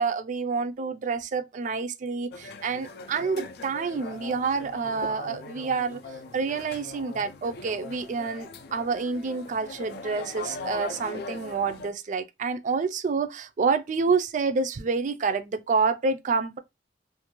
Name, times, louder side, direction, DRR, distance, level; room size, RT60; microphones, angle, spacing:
voice 1, 0.0-6.0 6.3-16.6, right 4 dB, 45° right, 0.3 m, -28 dB
at restaurant, 2.3-11.9, left 3 dB, 60° left, 0.3 m, -40 dB
2.5 x 2.2 x 2.9 m
head